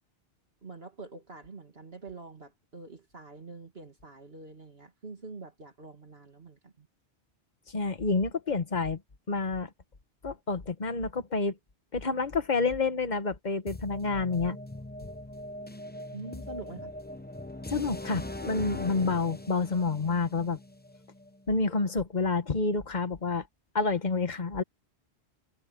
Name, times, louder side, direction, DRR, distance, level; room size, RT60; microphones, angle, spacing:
voice 1, 0.6-6.9 16.1-16.9, right 3 dB, 60° right, 2.8 m, -45 dB
voice 2, 7.7-9.0 9.3-9.7 10.2-11.6 11.9-14.6 17.7-20.6 21.5-23.4 23.7-24.6, left 4 dB, 40° left, 1.4 m, -28 dB
sound 1, 13.7-21.5, left 1 dB, 10° left, 0.7 m, -41 dB
omnidirectional pair, 1.1 m